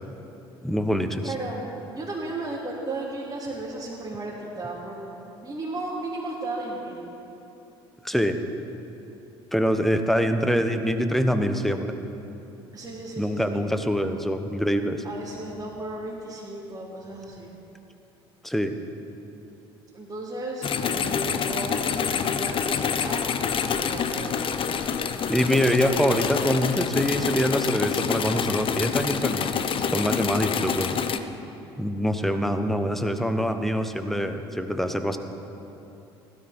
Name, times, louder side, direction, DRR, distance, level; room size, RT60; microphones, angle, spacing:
voice 1, 0.6-1.3 8.0-8.4 9.5-12.0 13.2-15.0 18.4-18.7 25.3-29.5 29.9-30.9 31.8-35.2, equal, ahead, 7 dB, 1.1 m, -24 dB
voice 2, 1.2-1.6 1.9-7.1 12.7-13.6 13.9-14.1 15.0-17.5 19.9-25.0 25.4-25.9, right 2 dB, 25° right, -7 dB, 3.0 m, -35 dB
sound 1, 20.6-31.2, left 7 dB, 40° left, 0.7 m, -27 dB
16.5 x 12.5 x 4.4 m, 2.9 s
hypercardioid pair, 60°, 13 cm